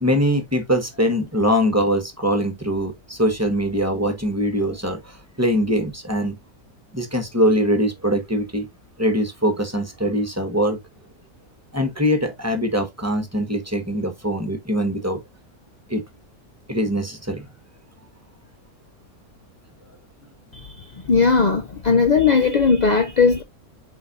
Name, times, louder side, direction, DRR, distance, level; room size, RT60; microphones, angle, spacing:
voice 1, 0.0-6.4 6.9-8.7 9.0-10.8 11.7-15.2 15.9-16.0 16.7-17.4, equal, 10° right, 1.3 m, -22 dB
voice 2, 21.1-23.4, left 5 dB, 60° left, 0.4 m, -17 dB
8.0 x 4.6 x 2.5 m
omnidirectional pair, 1.6 m